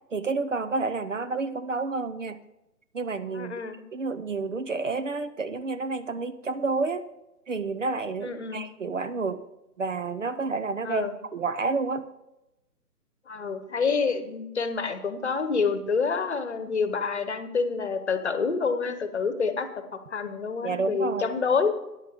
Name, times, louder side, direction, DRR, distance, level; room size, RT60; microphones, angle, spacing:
voice 1, 0.1-2.4 2.9-3.6 3.9-7.1 7.5-9.4 9.8-12.1 20.6-21.3, right 4 dB, 50° right, 12 dB, 0.7 m, -30 dB
voice 2, 3.3-3.8 8.2-8.6 10.8-11.1 13.3-21.7, left 5 dB, 45° left, 10 dB, 1.1 m, -28 dB
13.0 x 10.0 x 3.5 m, 0.93 s
figure-of-eight pair, 140°, 49 cm